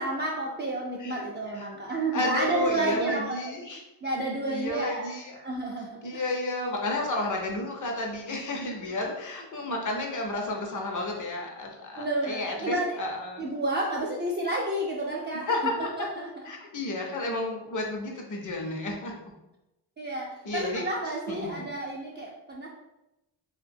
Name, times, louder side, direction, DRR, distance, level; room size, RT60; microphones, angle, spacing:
voice 1, 0.0-3.5 4.0-5.1 5.4-6.0 12.0-13.0 13.4-15.6 16.0-16.5 20.0-22.7, right 2 dB, 25° right, -3 dB, 0.4 m, -30 dB
voice 2, 2.1-3.8 4.5-5.4 6.0-13.4 15.5-16.1 16.4-19.1 20.4-20.8 21.3-21.5, left 2 dB, 50° left, 1 dB, 0.6 m, -32 dB
2.5 x 2.2 x 2.6 m, 0.92 s
cardioid pair, 80°, 41 cm